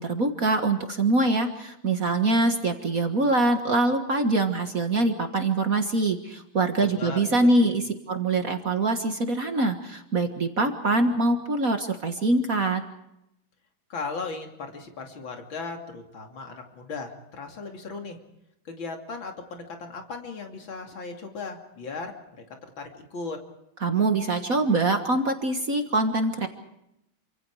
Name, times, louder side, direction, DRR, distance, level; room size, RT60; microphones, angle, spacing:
voice 1, 0.0-7.8 8.1-12.8 23.8-26.5, right 2 dB, 45° right, 6 dB, 1.9 m, -24 dB
voice 2, 6.8-7.7 13.9-18.2 18.6-22.1 22.8-23.4, left 4 dB, 70° left, 3 dB, 3.5 m, -37 dB
28.0 x 25.5 x 4.9 m, 0.82 s
omnidirectional pair, 2.3 m